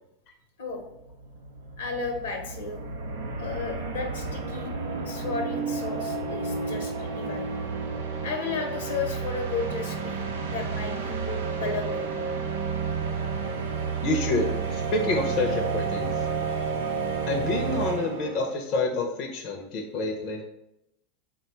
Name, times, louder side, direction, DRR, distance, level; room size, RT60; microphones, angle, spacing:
sound 1, 0.8-0.9 1.1-18.6, right 5 dB, 85° right, 0.5 m, -31 dB
voice 1, 1.8-2.8 3.4-4.7 5.1-7.5 8.2-12.1, left 4 dB, 80° left, 3 dB, 0.8 m, -33 dB
voice 2, 14.0-16.1 17.3-20.4, left 2 dB, 50° left, 2 dB, 0.6 m, -28 dB
3.7 x 2.3 x 4.3 m, 0.84 s
hypercardioid pair, 95°, 0 cm